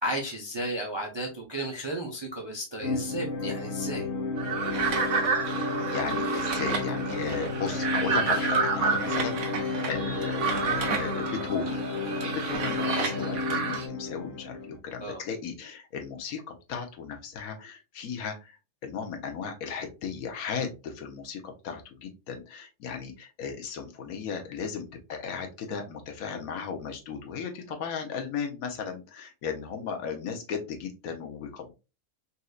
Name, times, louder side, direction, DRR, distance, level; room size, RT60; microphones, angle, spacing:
voice 1, 0.0-4.1 15.0-15.2, right 1 dB, 40° right, 0 dB, 0.4 m, -33 dB
sound 1, 2.8-14.8, left 3 dB, 40° left, 0.9 m, -32 dB
sound 2, 4.4-13.8, right 5 dB, 60° right, 1.0 m, -30 dB
voice 2, 5.4-11.9 12.2-18.5 18.8-31.7, left 6 dB, 70° left, 4 dB, 1.1 m, -36 dB
4.2 x 2.6 x 2.3 m, 0.28 s
omnidirectional pair, 1.6 m